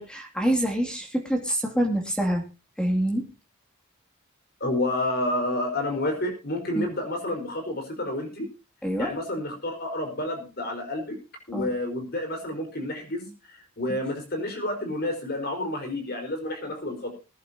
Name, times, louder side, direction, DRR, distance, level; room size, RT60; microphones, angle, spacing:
voice 1, 0.0-2.4 2.8-3.3 6.7-6.9 8.8-9.1 11.5-11.7 13.9-14.0, right 1 dB, 5° left, 3 dB, 2.7 m, -26 dB
voice 2, 4.6-8.5 9.0-11.2 11.5-17.2, left 1 dB, 50° left, 5 dB, 4.9 m, -30 dB
21.0 x 11.0 x 2.9 m, 0.30 s
head